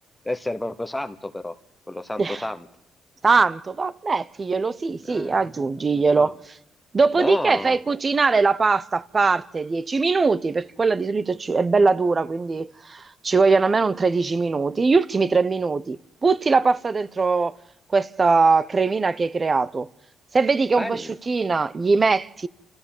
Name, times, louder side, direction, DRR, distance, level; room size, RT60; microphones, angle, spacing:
voice 1, 0.2-1.5 1.9-2.7 5.1-5.4 5.8-6.3 7.2-7.8 20.8-21.1, left 1 dB, 10° left, 1.0 m, -31 dB
voice 2, 3.2-6.4 6.9-17.5 17.9-19.9 20.3-22.5, right 4 dB, 30° right, 0.7 m, -21 dB
29.5 x 14.5 x 7.2 m
cardioid pair, 90°, 0 cm